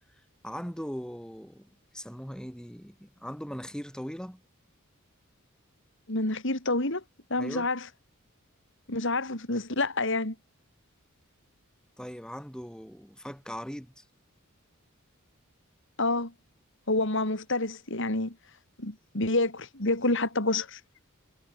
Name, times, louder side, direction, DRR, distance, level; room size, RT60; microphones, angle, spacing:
voice 1, 0.2-4.4 7.3-7.7 12.0-14.1, equal, 5° left, 3.5 m, -40 dB
voice 2, 6.1-7.0 7.3-7.8 8.9-10.4 16.0-16.3 16.9-18.4 18.8-20.8, left 2 dB, 60° left, 3.9 m, -28 dB
head